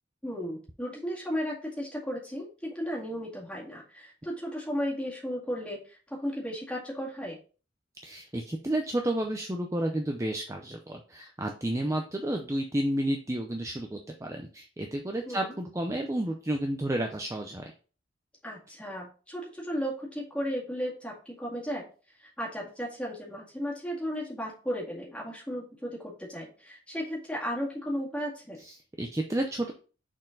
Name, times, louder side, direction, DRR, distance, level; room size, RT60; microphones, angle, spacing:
voice 1, 0.2-7.4 15.3-15.5 18.4-21.9 22.2-28.6, equal, 5° left, -4 dB, 2.0 m, -35 dB
voice 2, 8.0-17.7 28.6-29.7, right 1 dB, 15° right, 2 dB, 0.5 m, -31 dB
6.3 x 4.3 x 3.9 m, 0.37 s
head